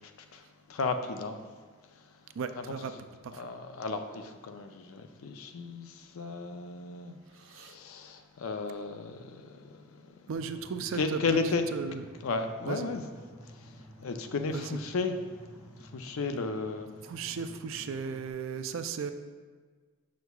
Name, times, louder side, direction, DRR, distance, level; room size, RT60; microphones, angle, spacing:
voice 1, 0.7-1.4 2.6-2.7 3.3-7.1 7.5-9.8 10.9-11.6 12.2-13.0 14.0-15.1 15.9-16.9, left 4 dB, 75° left, 7 dB, 0.5 m, -34 dB
voice 2, 2.4-2.9 3.3-3.4 7.5-7.7 10.3-11.2 11.7-12.0 12.6-12.9 14.5-14.8 17.1-19.1, right 6 dB, 65° right, 9 dB, 0.3 m, -36 dB
sound 1, 10.3-18.3, equal, 15° right, 0.6 m, -51 dB
6.8 x 6.3 x 2.3 m, 1.5 s
head